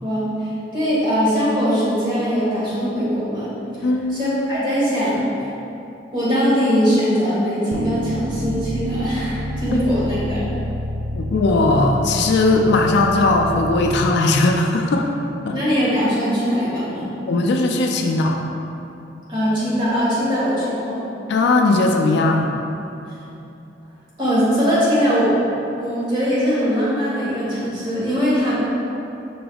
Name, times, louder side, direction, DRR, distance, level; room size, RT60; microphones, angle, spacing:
voice 1, 0.0-3.5 4.1-5.2 6.1-10.5 15.5-17.1 19.3-21.0 24.2-25.3 25.8-28.6, equal, 25° right, -9 dB, 1.4 m, -21 dB
voice 2, 3.8-4.2 9.7-9.8 11.1-15.1 15.4-15.6 17.3-18.4 21.3-22.5, left 2 dB, 65° left, 2 dB, 0.3 m, -18 dB
sound 1, 7.7-14.0, equal, 75° right, 0.4 m, -28 dB
5.9 x 3.4 x 2.3 m, 2.8 s
head